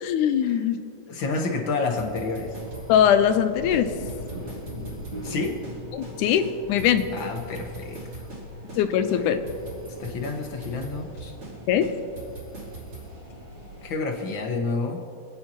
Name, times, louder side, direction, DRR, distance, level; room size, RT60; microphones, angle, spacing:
voice 1, 0.0-0.8 2.9-3.9 5.9-7.1 8.8-9.4 11.7-11.9, left 9 dB, 90° left, 9 dB, 2.1 m, -21 dB
voice 2, 1.1-2.6 5.2-5.6 7.1-8.3 9.1-9.4 10.0-11.3 13.8-15.0, left 3 dB, 60° left, 2 dB, 1.3 m, -29 dB
sound 1, 1.8-3.4 3.7-3.8 4.1-6.2 6.4-8.4 8.7-8.8 9.1-11.5 11.8-13.1, right 3 dB, 45° right, 4.3 m, -41 dB
sound 2, 2.4-13.9, equal, 15° right, 2.8 m, -41 dB
26.5 x 9.4 x 2.9 m, 2.4 s
omnidirectional pair, 3.5 m